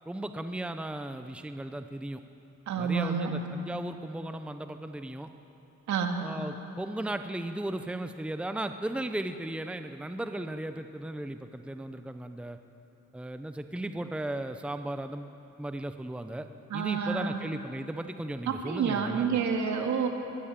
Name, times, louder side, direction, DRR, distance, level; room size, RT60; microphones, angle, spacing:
voice 1, 0.1-2.2 2.8-5.3 6.2-12.6 13.1-16.5 16.7-19.4, right 1 dB, 5° right, 8 dB, 0.8 m, -36 dB
voice 2, 2.7-3.4 5.9-6.2 16.7-17.4 18.5-20.1, right 6 dB, 70° right, 3 dB, 2.2 m, -29 dB
21.5 x 16.0 x 7.6 m, 2.9 s
cardioid pair, 90°, 30 cm